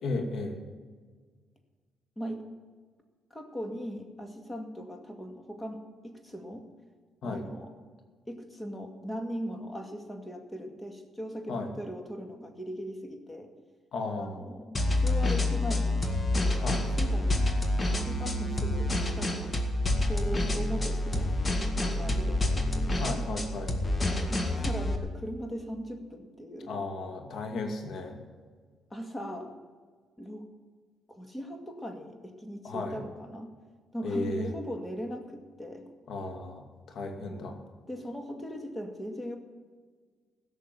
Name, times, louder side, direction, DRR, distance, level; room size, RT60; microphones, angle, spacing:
voice 1, 0.0-0.6 7.2-7.5 11.5-11.7 13.9-14.4 16.6-16.9 23.0-23.7 26.7-28.2 32.6-33.0 34.0-34.5 36.1-37.6, left 2 dB, 70° left, 4 dB, 2.4 m, -34 dB
voice 2, 2.2-2.5 3.3-6.6 7.2-7.7 8.3-13.5 14.2-16.1 16.3-16.7 17.0-17.6 18.0-19.6 20.1-21.4 21.8-23.3 24.3-26.7 28.9-29.6 30.2-30.5 31.1-33.5 33.9-35.9 37.2-37.6 37.9-39.4, equal, 15° left, 4 dB, 2.2 m, -39 dB
sound 1, 14.7-25.0, left 1 dB, 30° left, 1.9 m, -28 dB
16.5 x 6.5 x 9.6 m, 1.5 s
cardioid pair, 90°, 0 cm